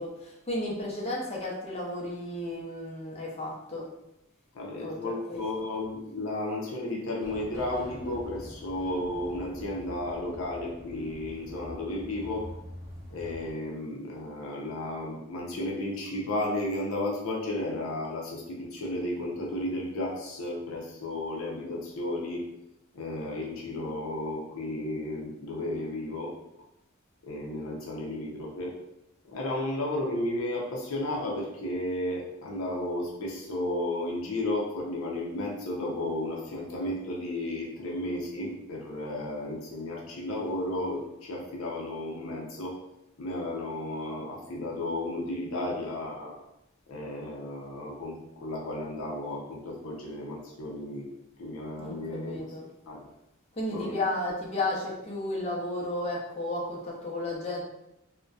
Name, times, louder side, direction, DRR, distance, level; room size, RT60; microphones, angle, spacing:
voice 1, 0.0-3.9 4.8-5.5 51.8-52.7 53.5-57.6, left 1 dB, 30° left, -3 dB, 0.5 m, -33 dB
voice 2, 4.5-12.5 13.1-22.4 22.9-26.3 27.2-28.8 29.3-42.8 43.2-46.4 46.9-51.1 51.4-52.5 52.9-53.1 53.7-54.0, left 1 dB, 85° left, -2 dB, 0.5 m, -33 dB
sound 1, 7.2-13.5, equal, 15° right, 0.7 m, -45 dB
2.5 x 2.1 x 2.3 m, 0.85 s
head